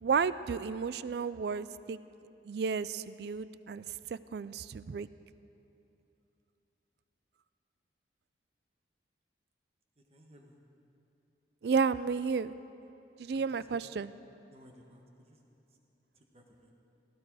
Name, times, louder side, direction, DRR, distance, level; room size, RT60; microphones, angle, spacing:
voice 1, 0.0-2.0 2.5-5.1 11.6-12.5 13.2-14.1, right 5 dB, 60° right, 16 dB, 0.3 m, -32 dB
voice 2, 10.1-10.6 13.5-13.8 14.5-15.4 16.1-16.7, equal, 35° right, 2 dB, 1.5 m, -58 dB
16.5 x 15.5 x 4.8 m, 2.8 s
head